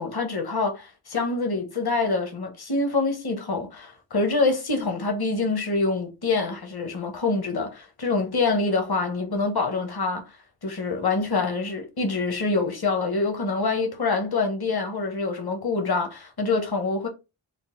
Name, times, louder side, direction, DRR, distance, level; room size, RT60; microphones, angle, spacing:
voice 1, 0.0-10.3 10.6-17.1, left 3 dB, 50° left, 1.0 m, -26 dB
3.8 x 2.1 x 3.6 m
wide cardioid pair, 40°, 50 cm